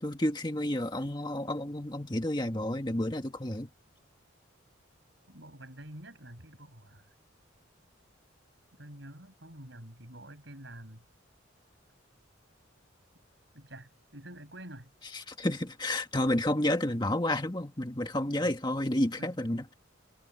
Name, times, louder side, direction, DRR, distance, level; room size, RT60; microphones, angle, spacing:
voice 1, 0.0-3.7 15.1-19.7, left 1 dB, 20° left, 1.8 m, -30 dB
voice 2, 5.3-7.0 8.8-11.0 13.5-14.9 18.4-18.6 19.2-19.4, right 1 dB, 60° right, 7.5 m, -48 dB
head